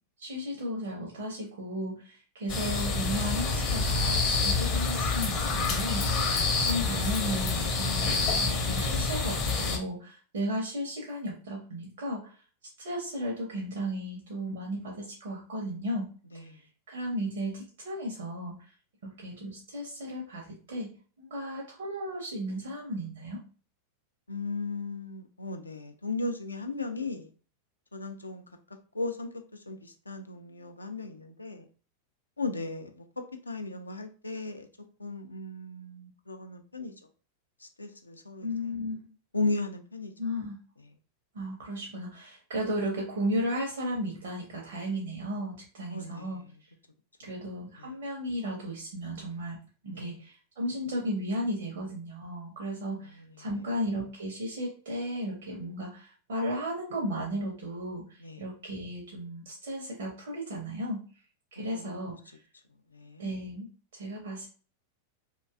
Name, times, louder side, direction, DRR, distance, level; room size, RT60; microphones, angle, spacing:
voice 1, 0.2-6.3 6.6-12.4 12.8-16.1 16.3-18.7 19.0-20.9 21.2-23.4 38.4-39.1 40.2-40.6 41.3-46.7 47.2-49.6 49.8-61.0 61.5-62.4 63.2-64.5, equal, 60° right, 0.6 m, -35 dB
sound 1, 2.5-9.8, left 3 dB, 35° left, 0.6 m, -27 dB
voice 2, 24.3-27.3 27.9-28.4 28.9-29.3 29.7-31.6 32.4-34.7 35.0-36.9 37.6-38.5 39.3-40.1 45.9-46.3 47.8-47.9 49.9-50.1 53.5-53.6 58.2-58.4 61.6-62.0 62.9-63.3, left 3 dB, 80° left, 0.3 m, -36 dB
2.5 x 2.2 x 2.3 m
figure-of-eight pair, 90°, 0 cm